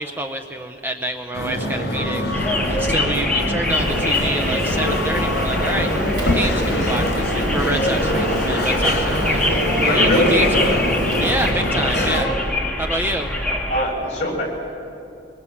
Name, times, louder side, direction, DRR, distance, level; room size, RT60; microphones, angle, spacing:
voice 1, 0.0-5.9 6.2-10.8 11.2-12.3 12.8-13.3, right 1 dB, 10° right, 4 dB, 0.7 m, -27 dB
sound 1, 1.3-12.2, equal, 60° left, 4.1 m, -23 dB
sound 2, 2.3-13.8, left 1 dB, 5° left, 2.2 m, -24 dB
Rain, 3.7-11.5, equal, 65° right, 5.3 m, -31 dB
voice 2, 9.9-10.3 13.7-14.4, left 1 dB, 40° left, -1 dB, 7.0 m, -21 dB
23.5 x 23.5 x 7.4 m, 2.6 s
head